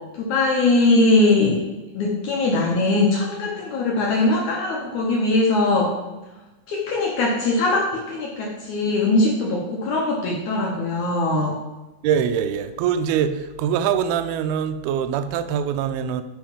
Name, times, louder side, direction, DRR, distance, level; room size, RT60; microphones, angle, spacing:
voice 1, 0.1-1.6 1.9-5.9 6.7-11.5, left 2 dB, 70° left, -2 dB, 1.9 m, -21 dB
voice 2, 12.0-16.2, right 8 dB, 80° right, 9 dB, 2.3 m, -23 dB
9.2 x 4.6 x 5.0 m, 1.1 s
omnidirectional pair, 4.7 m